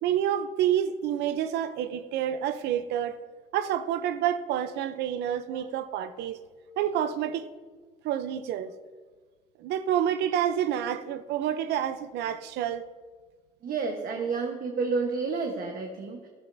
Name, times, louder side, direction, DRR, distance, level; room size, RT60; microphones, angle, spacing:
voice 1, 0.0-3.2 3.5-6.4 6.8-7.5 8.0-8.7 9.6-12.8, right 10 dB, 80° right, 0.6 m, -28 dB
voice 2, 13.6-16.3, right 4 dB, 60° right, 1.2 m, -30 dB
15.0 x 12.0 x 2.7 m
cardioid pair, 110°, 17 cm